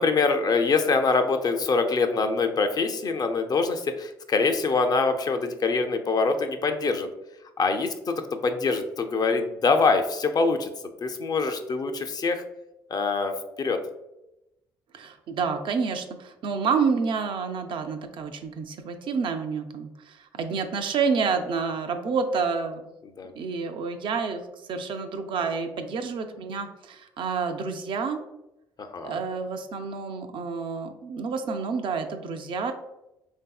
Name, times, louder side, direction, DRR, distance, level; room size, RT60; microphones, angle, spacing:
voice 1, 0.0-7.1 7.6-10.7 11.0-12.4 12.9-13.8 23.2-23.3 28.8-29.2, left 4 dB, 45° left, 6 dB, 0.4 m, -24 dB
voice 2, 14.9-22.8 23.3-28.2 29.0-32.7, right 5 dB, 60° right, 6 dB, 0.4 m, -29 dB
3.4 x 2.6 x 2.3 m, 0.91 s
supercardioid pair, 65°, 9 cm